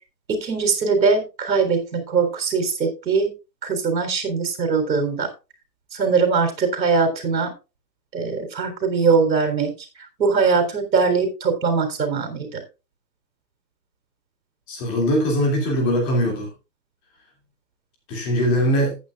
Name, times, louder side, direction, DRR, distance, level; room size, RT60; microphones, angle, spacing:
voice 1, 0.3-3.3 3.6-5.3 5.9-7.5 8.1-9.7 10.2-12.6, right 5 dB, 90° right, 6 dB, 3.8 m, -21 dB
voice 2, 14.7-16.5 18.1-19.0, equal, 15° left, 1 dB, 2.5 m, -21 dB
15.0 x 8.9 x 2.4 m, 0.28 s
hypercardioid pair, 175°, 50 cm